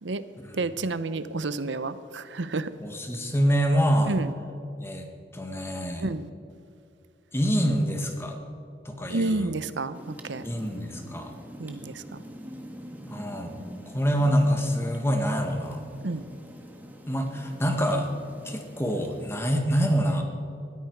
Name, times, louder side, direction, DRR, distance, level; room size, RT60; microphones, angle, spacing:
voice 1, 0.6-2.7 4.1-4.3 6.0-6.3 9.1-10.4 11.6-11.9 16.0-16.2, right 3 dB, 85° right, 14 dB, 0.8 m, -30 dB
voice 2, 2.8-4.2 4.8-6.1 7.3-8.4 8.8-9.5 10.4-11.3 13.1-13.6 13.9-15.8 17.1-18.1 18.4-20.2, equal, 15° left, 4 dB, 1.7 m, -26 dB
sound 1, 9.9-19.3, equal, 10° right, 1.5 m, -44 dB
19.5 x 14.0 x 4.7 m, 2.7 s
head